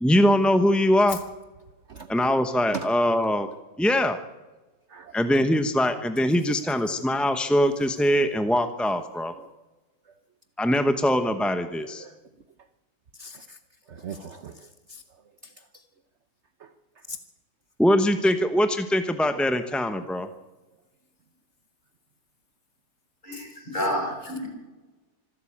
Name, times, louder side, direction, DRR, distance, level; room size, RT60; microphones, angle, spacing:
voice 1, 0.0-1.2 2.1-3.5 3.8-4.2 5.1-9.3 10.6-12.0 17.8-20.3, equal, ahead, 8 dB, 0.5 m, -22 dB
voice 2, 11.8-12.1 13.2-13.6 13.9-14.5 14.9-15.0 17.1-17.2 23.3-23.4, right 3 dB, 50° right, 10 dB, 1.0 m, -38 dB
voice 3, 23.2-24.5, equal, 25° left, 0 dB, 7.1 m, -29 dB
25.5 x 12.5 x 8.7 m, 1.2 s
omnidirectional pair, 2.0 m